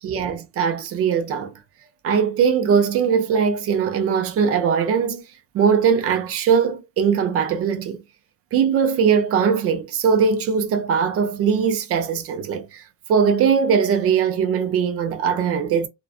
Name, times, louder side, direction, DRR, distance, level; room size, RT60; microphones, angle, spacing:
voice 1, 0.0-1.5 2.0-5.2 5.5-8.0 8.5-12.8 13.1-15.9, right 6 dB, 45° right, 0.5 m, -20 dB
2.4 x 2.2 x 2.3 m
cardioid pair, 165°, 32 cm